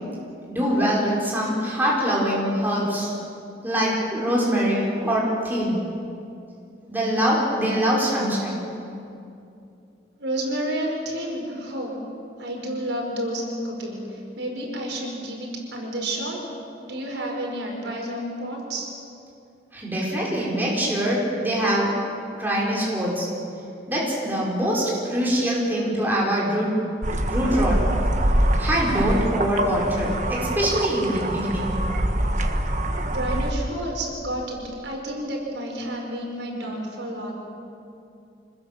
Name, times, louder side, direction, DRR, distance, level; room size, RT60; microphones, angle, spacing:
voice 1, 0.5-3.1 3.6-5.8 6.9-8.7 19.7-22.1 22.4-23.3 23.9-26.7 27.3-27.8 28.6-31.7, equal, 10° right, -5 dB, 4.8 m, -23 dB
voice 2, 10.2-11.9 12.4-16.4 16.8-18.9 33.1-37.3, right 1 dB, 75° right, 0 dB, 5.5 m, -30 dB
sound 1, 27.0-33.5, right 1 dB, 40° right, 1.5 m, -24 dB
26.0 x 20.5 x 7.4 m, 2.6 s
head